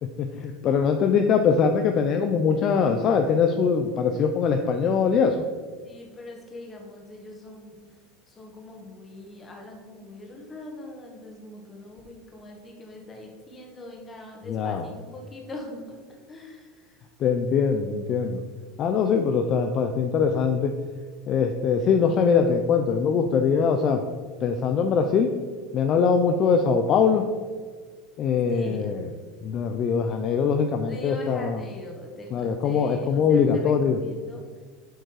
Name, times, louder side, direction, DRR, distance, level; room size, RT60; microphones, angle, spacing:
voice 1, 0.0-5.4 14.5-14.8 17.2-18.4 18.8-20.7 21.3-24.0 24.4-25.3 25.7-27.3 28.2-29.1 29.4-31.5 32.3-34.0, left 6 dB, 40° left, 5 dB, 0.5 m, -22 dB
voice 2, 5.8-7.8 8.3-17.0 28.5-28.9 30.9-34.6, left 2 dB, 20° left, 1 dB, 1.7 m, -42 dB
7.6 x 5.4 x 4.8 m, 1.5 s
supercardioid pair, 130°, 0 cm